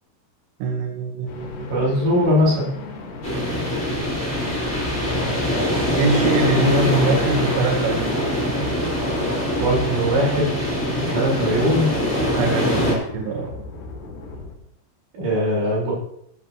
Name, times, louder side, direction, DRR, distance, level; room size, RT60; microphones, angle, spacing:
voice 1, 0.6-1.9 6.0-8.2 12.3-13.5, right 3 dB, 80° right, 2 dB, 3.7 m, -23 dB
sound 1, 1.3-14.5, left 3 dB, 60° left, 4.1 m, -36 dB
voice 2, 1.7-2.7 9.6-10.6 11.0-11.9 15.1-16.0, equal, 60° right, -4 dB, 6.8 m, -20 dB
sound 2, 3.2-12.9, equal, 5° left, 3.9 m, -23 dB
16.0 x 12.5 x 3.0 m, 0.75 s
omnidirectional pair, 5.7 m